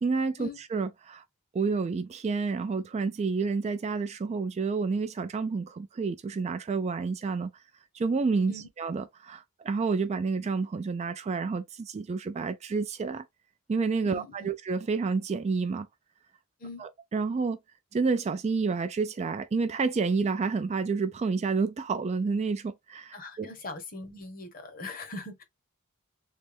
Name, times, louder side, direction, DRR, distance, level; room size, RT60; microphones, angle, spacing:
voice 1, 0.0-1.2 1.5-7.5 7.9-13.3 13.7-15.9 16.8-17.6 17.9-23.5, right 4 dB, 30° right, 0.3 m, -29 dB
voice 2, 14.0-14.5 16.6-16.8 23.1-25.4, left 2 dB, 40° left, 0.9 m, -41 dB
3.2 x 2.6 x 3.3 m
head